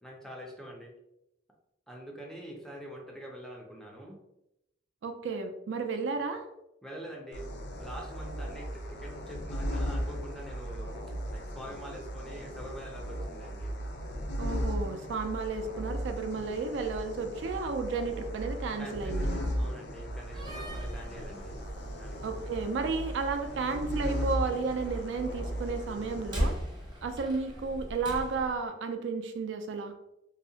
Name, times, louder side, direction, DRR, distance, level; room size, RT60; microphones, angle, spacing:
voice 1, 0.0-0.9 1.9-4.2 6.8-7.5 7.8-10.9 11.3-13.7 18.8-21.5 21.9-22.4, equal, 5° left, -1 dB, 0.4 m, -45 dB
voice 2, 5.0-6.5 14.4-19.5 22.2-26.5 27.0-29.9, right 4 dB, 80° right, 6 dB, 0.3 m, -33 dB
sound 1, 7.3-26.5, equal, 65° left, 0.5 m, -36 dB
Slam, 20.2-28.6, equal, 25° right, 0.8 m, -40 dB
2.7 x 2.0 x 2.7 m, 0.85 s
head